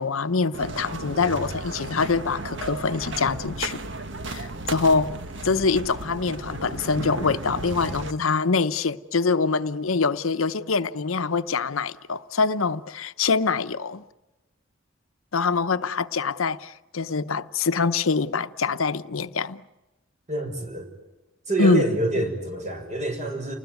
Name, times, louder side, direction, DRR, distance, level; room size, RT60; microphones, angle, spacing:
voice 1, 0.0-3.8 4.3-14.0 15.3-19.6 21.6-21.9 22.1-22.2, left 4 dB, 85° left, 0.8 m, -24 dB
sound 1, 0.5-8.1, right 2 dB, 65° right, 1.6 m, -34 dB
voice 2, 20.3-20.9 21.5-23.5, right 2 dB, 35° right, 6.3 m, -27 dB
29.5 x 20.0 x 9.3 m
head